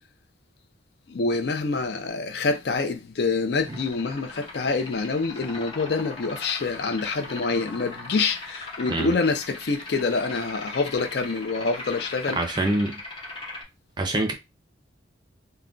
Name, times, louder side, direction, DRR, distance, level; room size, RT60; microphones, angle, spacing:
voice 1, 1.1-12.7, left 4 dB, 55° left, 0.4 m, -26 dB
sound 1, 3.7-13.6, left 2 dB, 25° left, 0.7 m, -40 dB
voice 2, 12.4-13.0 14.0-14.3, right 2 dB, 25° right, 0.5 m, -25 dB
2.3 x 2.2 x 3.7 m
head